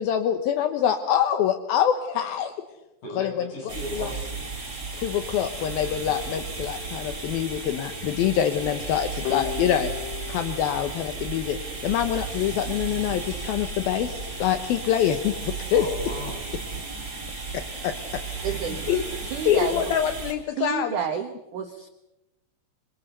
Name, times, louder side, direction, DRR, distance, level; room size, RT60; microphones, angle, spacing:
voice 1, 0.0-2.5 3.2-3.3 4.0-4.1 4.9-9.9 10.3-15.9 17.8-18.2 18.5-18.6 18.9-19.0 19.5-21.0, left 10 dB, 70° left, 8 dB, 2.4 m, -25 dB
voice 2, 3.0-4.3 15.7-16.4 18.4-19.0, left 1 dB, 45° left, 0 dB, 9.6 m, -37 dB
sound 1, 3.7-20.3, right 4 dB, 20° right, 4.5 m, -34 dB
sound 2, 9.3-12.1, left 12 dB, 90° left, 3.8 m, -36 dB
voice 3, 18.4-18.8 19.2-19.8 20.6-21.9, right 7 dB, 70° right, 7 dB, 1.9 m, -30 dB
27.5 x 24.0 x 6.8 m, 0.96 s
omnidirectional pair, 5.5 m